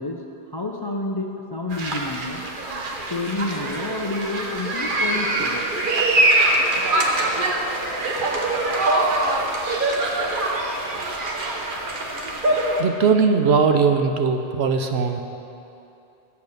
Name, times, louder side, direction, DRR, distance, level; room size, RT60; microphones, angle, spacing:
voice 1, 0.0-2.4 3.1-5.7, left 2 dB, 30° left, 1 dB, 0.4 m, -29 dB
sound 1, 1.7-12.8, right 2 dB, 55° right, 1.0 m, -23 dB
voice 2, 12.8-15.2, right 5 dB, 75° right, 6 dB, 1.0 m, -19 dB
8.4 x 6.9 x 6.6 m, 2.8 s
omnidirectional pair, 1.1 m